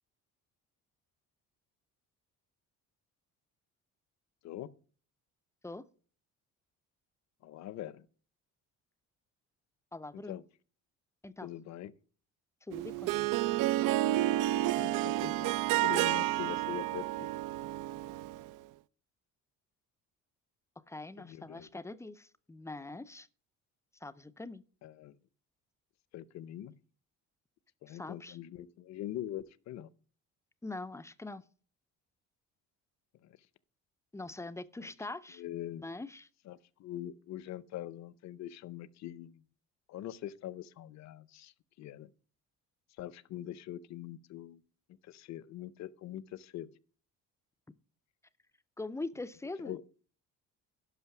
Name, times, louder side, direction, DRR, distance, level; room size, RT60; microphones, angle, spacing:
voice 1, 7.4-8.1 10.1-10.4 11.4-11.9 14.7-17.3 21.2-21.7 24.8-25.2 26.1-26.7 27.8-29.9 33.2-33.4 35.4-35.9 36.5-39.4 39.9-41.5 41.8-42.1 43.0-44.6 45.0-46.7 49.6-49.8, left 12 dB, 60° left, 0.7 m, -43 dB
voice 2, 9.9-10.4 11.2-11.5 12.6-13.1 20.9-23.3 24.0-24.6 27.9-28.4 30.6-31.4 34.1-35.4 35.7-36.3 48.8-49.8, left 2 dB, 10° left, 0.4 m, -43 dB
Harp, 12.7-18.5, right 15 dB, 80° right, 0.5 m, -30 dB
11.5 x 5.7 x 5.8 m
cardioid pair, 125°, 31 cm